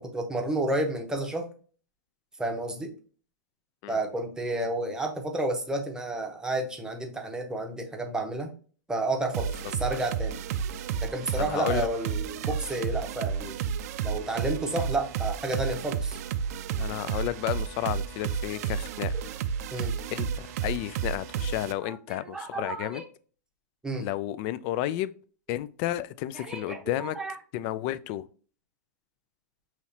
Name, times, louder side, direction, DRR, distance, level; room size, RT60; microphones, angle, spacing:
voice 1, 0.0-1.5 2.4-2.9 3.9-8.5 8.9-10.4 11.0-13.6 14.0-16.2 19.7-19.9 21.8-23.0 23.8-24.1 26.3-27.4, right 2 dB, 5° right, 0.9 m, -31 dB
sound 1, 9.3-21.7, right 7 dB, 55° right, 0.4 m, -32 dB
voice 2, 11.4-11.9 16.8-19.4 19.7-19.8 20.1-23.0 24.0-25.1 25.5-27.2 27.5-28.2, left 14 dB, 40° left, 0.4 m, -32 dB
5.5 x 3.1 x 2.7 m
hypercardioid pair, 130°, 10 cm